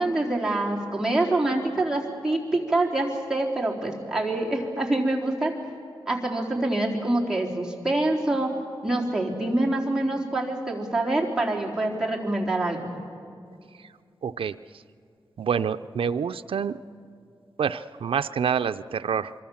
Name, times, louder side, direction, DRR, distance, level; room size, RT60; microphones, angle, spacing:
voice 1, 0.0-5.5 6.1-8.5 8.8-13.0, right 2 dB, 5° right, -3 dB, 3.9 m, -25 dB
voice 2, 14.2-14.5 15.4-16.8 17.6-19.3, right 7 dB, 90° right, 9 dB, 0.5 m, -27 dB
25.5 x 24.5 x 7.2 m, 2.4 s
wide cardioid pair, 100°, 9 cm